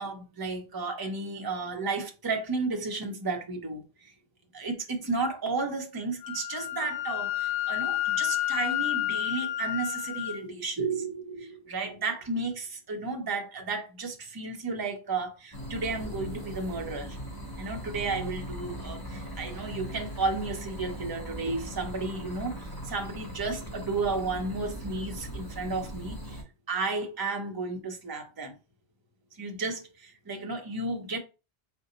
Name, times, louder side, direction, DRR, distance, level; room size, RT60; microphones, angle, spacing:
voice 1, 0.0-4.1 4.5-17.2 17.6-26.4 26.7-28.5 29.3-31.2, right 3 dB, 25° right, 0.7 m, -33 dB
Wind instrument woodwind instrument, 6.2-10.4, left 14 dB, 75° left, 0.9 m, -30 dB
sound 1, 15.5-26.4, equal, 20° left, 1.7 m, -39 dB
4.2 x 2.2 x 3.8 m
omnidirectional pair, 1.0 m